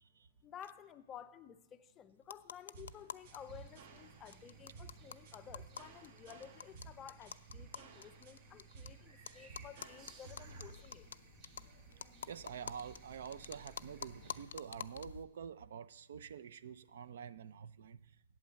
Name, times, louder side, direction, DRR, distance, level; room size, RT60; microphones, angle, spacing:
voice 1, 0.4-11.1, left 9 dB, 20° left, 0.4 m, -54 dB
sound 1, 2.2-3.4 3.7-3.8 4.0-4.1 4.3-8.9 9.3-15.2, left 7 dB, 85° left, 0.4 m, -49 dB
sound 2, 2.7-10.7, right 4 dB, 50° right, 1.2 m, -55 dB
sound 3, 3.2-14.4, right 5 dB, 30° right, 2.1 m, -60 dB
voice 2, 12.3-18.0, right 7 dB, 65° right, 0.5 m, -47 dB
8.7 x 8.3 x 7.5 m
hypercardioid pair, 160°, 0 cm